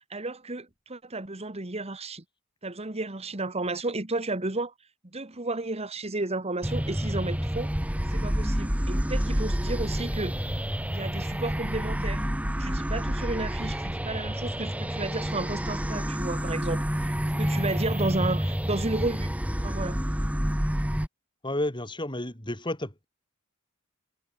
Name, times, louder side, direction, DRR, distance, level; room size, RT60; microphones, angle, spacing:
voice 1, 0.1-2.2 2.6-4.7 5.1-7.7 8.1-10.3 10.9-12.2 12.6-19.3 19.6-20.0, right 2 dB, 30° right, 1.7 m, -32 dB
sound 1, 6.6-21.1, equal, 5° right, 1.3 m, -29 dB
voice 2, 21.4-23.1, left 1 dB, 20° left, 4.5 m, -31 dB
head